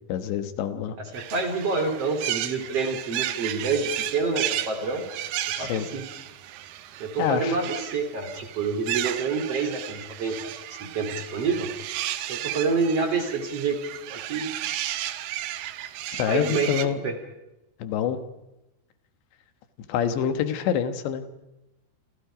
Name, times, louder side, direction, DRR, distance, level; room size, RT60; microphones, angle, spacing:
voice 1, 0.1-1.0 5.6-5.9 7.2-7.6 16.1-17.0 17.8-18.2 19.9-21.2, left 9 dB, 85° left, 10 dB, 3.7 m, -26 dB
voice 2, 1.1-5.0 5.6-6.0 7.0-11.7 12.3-13.8 14.1-14.5 16.3-17.1, right 4 dB, 40° right, 6 dB, 3.4 m, -27 dB
sound 1, 1.1-16.9, right 13 dB, 70° right, 2.7 m, -34 dB
29.0 x 27.0 x 5.1 m, 0.95 s
omnidirectional pair, 4.9 m